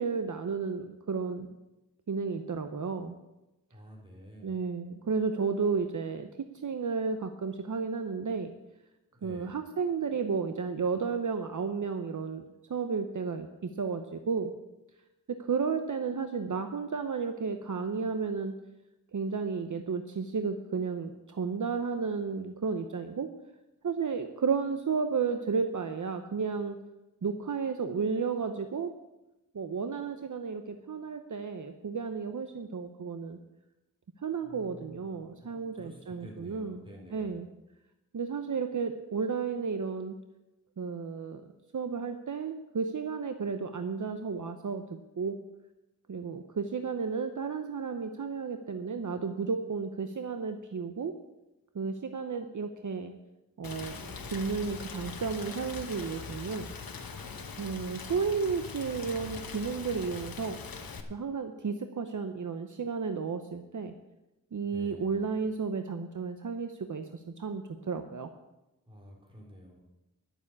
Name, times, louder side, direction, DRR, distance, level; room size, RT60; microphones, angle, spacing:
voice 1, 0.0-1.5 2.1-3.2 4.4-6.3 6.6-8.5 9.2-12.4 12.7-14.5 15.4-18.6 19.1-23.3 23.8-26.8 27.2-28.9 29.5-33.4 34.2-36.8 37.1-37.5 38.1-40.2 40.8-41.4 41.7-44.8 45.2-45.4 46.1-51.1 51.7-53.1 53.6-56.7 57.6-60.6 61.1-63.9 64.5-68.3, right 5 dB, 60° right, 7 dB, 0.8 m, -33 dB
voice 2, 3.7-4.5 9.1-9.6 34.4-37.4 64.6-65.3 68.9-69.8, equal, 15° right, -2 dB, 4.0 m, -50 dB
Rain, 53.6-61.0, left 5 dB, 85° left, 1.1 m, -41 dB
11.0 x 7.1 x 8.3 m, 0.97 s
wide cardioid pair, 80°, 34 cm